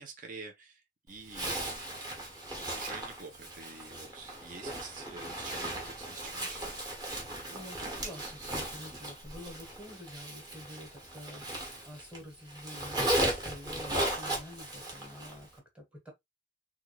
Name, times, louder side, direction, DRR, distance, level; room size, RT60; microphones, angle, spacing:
voice 1, 0.0-2.0 2.6-7.1 7.4-8.6, right 4 dB, 45° right, 0.8 m, -48 dB
Zipper (clothing), 1.3-12.2 12.5-15.4, right 1 dB, 20° right, 1.2 m, -36 dB
voice 2, 7.5-8.2 8.5-16.1, left 1 dB, 5° right, 1.3 m, -48 dB
3.6 x 2.4 x 3.0 m
head